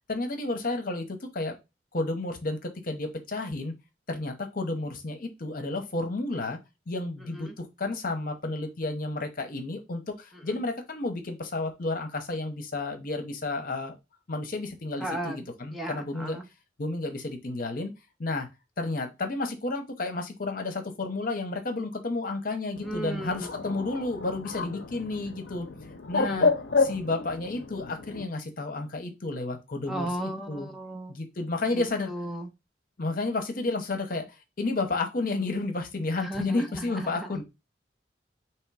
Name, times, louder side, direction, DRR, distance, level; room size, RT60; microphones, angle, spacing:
voice 1, 0.1-1.6 1.9-3.7 4.1-6.6 6.9-14.0 14.3-16.4 16.8-17.9 18.2-18.5 18.8-25.7 26.1-26.5 26.8-30.7 31.1-32.1 33.0-34.3 34.6-37.4, left 2 dB, 50° left, 0.9 m, -31 dB
voice 2, 15.0-16.5 22.8-23.5 26.2-26.5 29.9-31.1 31.7-32.5 36.2-37.3, right 1 dB, ahead, 0.5 m, -35 dB
Bird, 22.8-28.3, left 4 dB, 75° left, 0.6 m, -30 dB
3.6 x 3.0 x 4.6 m
head